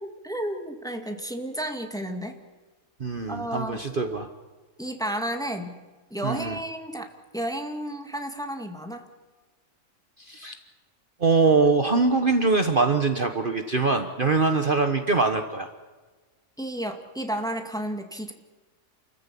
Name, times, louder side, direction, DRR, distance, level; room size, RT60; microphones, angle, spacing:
voice 1, 0.0-2.4 3.3-3.8 4.8-5.8 6.1-9.1 16.6-18.3, right 1 dB, 5° left, 5 dB, 1.9 m, -32 dB
voice 2, 3.0-4.3 6.2-6.6 10.2-10.5 11.2-15.7, right 4 dB, 40° right, 7 dB, 1.3 m, -23 dB
29.5 x 14.5 x 8.4 m, 1.3 s
omnidirectional pair, 1.5 m